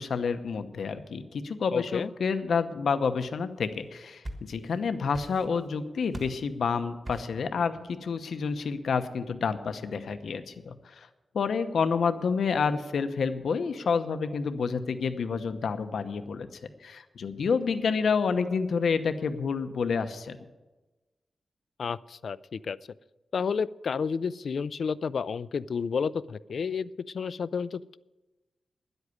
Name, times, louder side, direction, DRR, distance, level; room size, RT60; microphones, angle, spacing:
voice 1, 0.0-11.1 11.3-16.5 16.8-20.4, left 5 dB, 80° left, 10 dB, 0.9 m, -29 dB
voice 2, 1.7-2.1 21.8-22.8 23.3-26.9 27.1-28.0, left 6 dB, 60° left, 19 dB, 0.3 m, -31 dB
sound 1, 3.8-4.8 5.1-5.7 6.1-6.5 7.0-7.4, right 1 dB, 30° right, 1.4 m, -42 dB
11.0 x 8.1 x 9.5 m, 1.1 s
wide cardioid pair, 170°, 0 cm